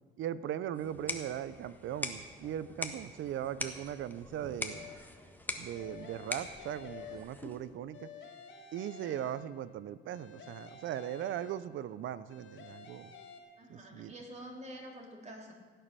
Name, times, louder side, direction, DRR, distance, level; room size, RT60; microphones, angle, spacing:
voice 1, 0.2-4.9 5.6-8.1 8.7-13.1 13.7-14.1, right 11 dB, 75° right, 16 dB, 0.6 m, -39 dB
sound 1, 0.8-7.7, left 1 dB, 10° left, 1.5 m, -43 dB
sound 2, 4.7-5.2 5.7-7.6 7.9-9.7 10.1-11.9 12.3-13.4, left 5 dB, 75° left, 2.5 m, -51 dB
voice 2, 13.6-15.5, right 1 dB, 35° right, 0 dB, 3.4 m, -47 dB
16.5 x 9.1 x 6.8 m, 1.5 s
cardioid pair, 90°, 20 cm